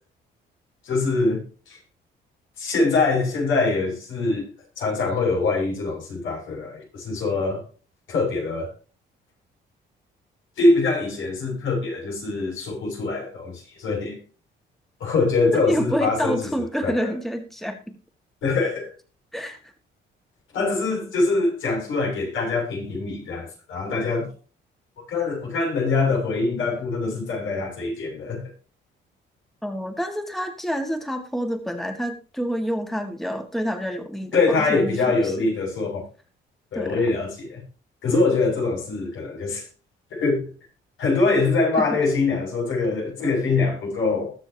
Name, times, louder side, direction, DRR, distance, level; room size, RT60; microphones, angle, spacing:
voice 1, 0.8-1.8 2.6-4.5 4.8-7.6 8.1-8.7 10.6-14.2 15.0-16.4 16.8-17.1 18.4-18.9 20.5-24.3 25.1-28.5 34.3-36.0 36.7-37.6 38.0-39.7 40.1-40.5 41.0-44.3, left 3 dB, 80° left, 7.3 m, -23 dB
voice 2, 15.5-18.0 19.3-19.7 29.6-35.5 36.7-37.1 41.8-41.9, equal, ahead, 1.9 m, -28 dB
21.0 x 7.1 x 2.9 m
cardioid pair, 90°, 20 cm